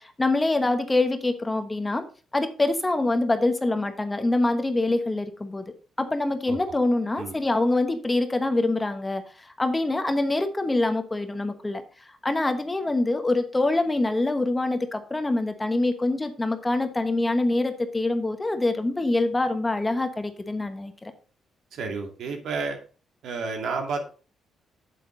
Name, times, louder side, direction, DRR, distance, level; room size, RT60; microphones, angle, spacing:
voice 1, 0.0-2.0 2.3-11.8 12.2-21.1, left 2 dB, 15° left, 8 dB, 1.2 m, -25 dB
voice 2, 21.7-22.8 23.2-24.1, right 4 dB, 70° right, 3 dB, 2.3 m, -30 dB
8.0 x 7.6 x 3.8 m, 0.37 s
cardioid pair, 90°, 0 cm